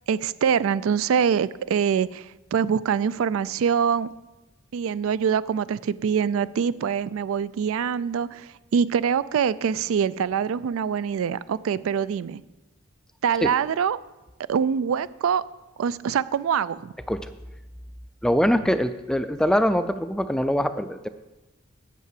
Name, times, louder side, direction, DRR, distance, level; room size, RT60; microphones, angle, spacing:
voice 1, 0.1-4.1 4.7-12.4 13.2-14.0 14.5-15.4 15.8-16.9, right 7 dB, 75° right, 18 dB, 0.3 m, -24 dB
voice 2, 18.2-21.1, equal, 5° left, 11 dB, 0.3 m, -23 dB
8.3 x 6.6 x 7.6 m, 1.1 s
head